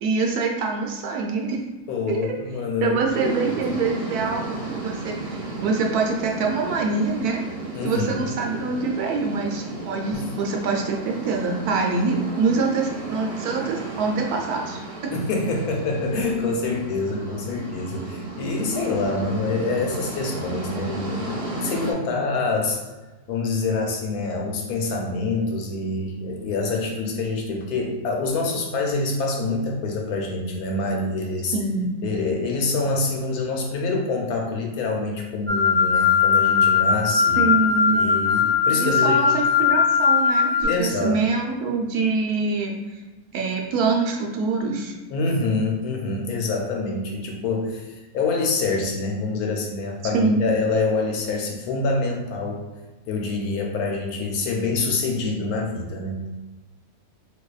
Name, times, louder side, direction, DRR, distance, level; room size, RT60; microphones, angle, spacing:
voice 1, 0.0-1.6 2.1-2.3 2.8-4.4 4.7-7.4 7.8-14.8 31.5-31.9 37.4-38.2 38.8-43.0 43.3-44.9 50.1-50.4, right 4 dB, 80° right, 1 dB, 1.1 m, -25 dB
voice 2, 1.9-3.3 7.7-8.2 10.1-10.3 15.1-22.8 23.3-31.5 32.0-37.4 37.9-39.2 40.7-41.2 45.1-52.6 53.1-56.3, left 3 dB, 75° left, 1 dB, 1.1 m, -26 dB
sound 1, 3.1-21.9, right 2 dB, 40° right, 0.5 m, -34 dB
sound 2, 35.5-40.6, left 6 dB, 25° left, 0.8 m, -19 dB
4.1 x 2.7 x 2.3 m, 1.2 s
omnidirectional pair, 1.6 m